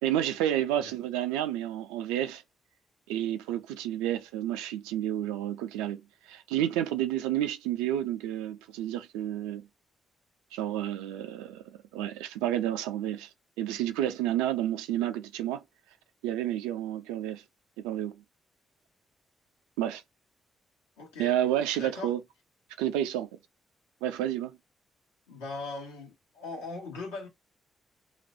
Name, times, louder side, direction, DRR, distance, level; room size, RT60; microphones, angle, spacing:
voice 1, 0.0-2.4 3.1-9.7 10.5-11.6 11.9-13.3 13.6-15.6 16.2-17.4 17.8-18.2 19.8-20.0 21.2-22.2 22.8-23.3 24.0-24.6, right 12 dB, 80° right, 0.4 m, -30 dB
voice 2, 21.0-21.3 21.8-22.1 25.3-27.3, left 3 dB, 90° left, 1.0 m, -39 dB
2.4 x 2.1 x 2.5 m
hypercardioid pair, 40°, 0 cm